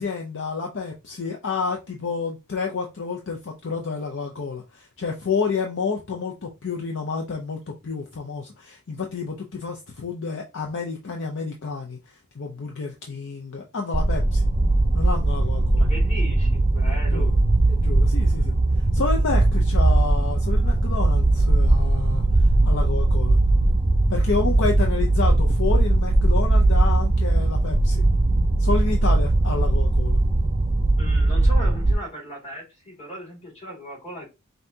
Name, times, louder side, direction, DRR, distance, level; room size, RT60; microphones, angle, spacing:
voice 1, 0.0-12.0 12.3-14.4 14.9-15.9 17.1-17.3 17.7-18.5 18.9-23.4 24.1-28.0 28.6-30.2, left 4 dB, 55° left, 0.6 m, -29 dB
sound 1, 13.9-31.9, right 2 dB, 25° right, 0.5 m, -19 dB
voice 2, 15.8-17.3 31.0-34.3, equal, 30° left, 2.4 m, -37 dB
5.6 x 2.7 x 2.8 m
head